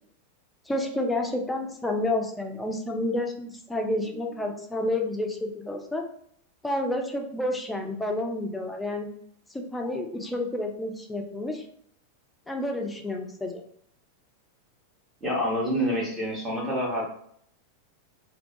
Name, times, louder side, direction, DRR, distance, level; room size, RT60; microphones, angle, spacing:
voice 1, 0.7-6.1 6.6-9.1 9.5-11.6 12.5-13.6, left 1 dB, 5° left, 2 dB, 0.4 m, -30 dB
voice 2, 15.2-17.0, equal, 15° right, -5 dB, 0.9 m, -27 dB
2.2 x 2.2 x 2.6 m, 0.65 s
figure-of-eight pair, 90°, 0 cm